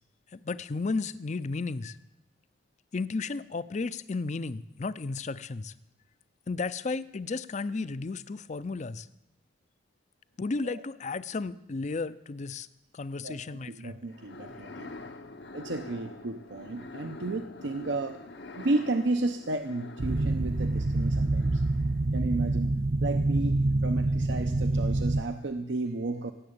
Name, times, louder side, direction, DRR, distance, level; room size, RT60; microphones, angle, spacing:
voice 1, 0.3-2.0 2.9-5.7 6.5-9.1 10.4-12.7 12.9-14.0, left 3 dB, 40° left, 17 dB, 0.5 m, -33 dB
voice 2, 13.2-14.9 15.5-18.2 18.5-21.6 22.1-22.7 23.0-26.3, right 2 dB, 70° right, 7 dB, 0.8 m, -32 dB
sound 1, 14.1-22.1, left 3 dB, 65° left, 0.9 m, -46 dB
sound 2, 20.0-25.2, right 2 dB, 30° right, 0.5 m, -26 dB
17.0 x 7.8 x 8.6 m, 0.88 s
head